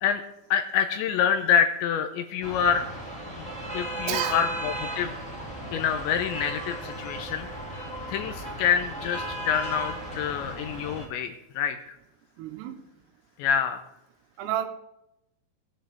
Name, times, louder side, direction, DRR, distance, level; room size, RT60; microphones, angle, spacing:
voice 1, 0.5-2.9 3.7-5.1 5.7-7.5 7.8-11.9 13.4-13.8, left 8 dB, 80° left, 7 dB, 2.8 m, -26 dB
sound 1, 2.4-11.1, right 1 dB, ahead, 2.3 m, -36 dB
voice 2, 4.1-4.5 12.4-12.8 14.4-14.7, right 10 dB, 85° right, 6 dB, 3.9 m, -30 dB
17.5 x 9.3 x 5.0 m, 0.85 s
omnidirectional pair, 5.8 m